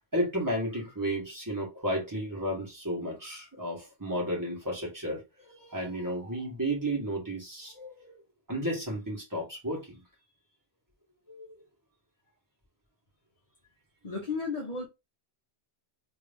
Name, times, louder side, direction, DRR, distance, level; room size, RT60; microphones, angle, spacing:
voice 1, 0.1-8.2 8.5-10.0 11.3-11.5, right 1 dB, 15° right, 1.4 m, -33 dB
voice 2, 14.0-14.9, left 4 dB, 40° left, 0.8 m, -33 dB
2.9 x 2.7 x 3.4 m
omnidirectional pair, 1.1 m